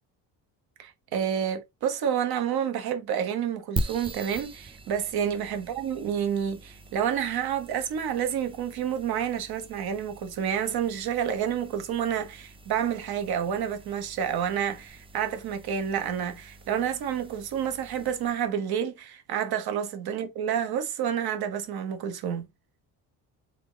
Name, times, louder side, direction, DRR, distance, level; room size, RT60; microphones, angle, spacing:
voice 1, 0.8-22.4, right 8 dB, 60° right, 1.3 m, -29 dB
sound 1, 3.8-18.5, right 2 dB, 15° right, 0.4 m, -42 dB
3.8 x 3.6 x 3.6 m
cardioid pair, 125°, 42 cm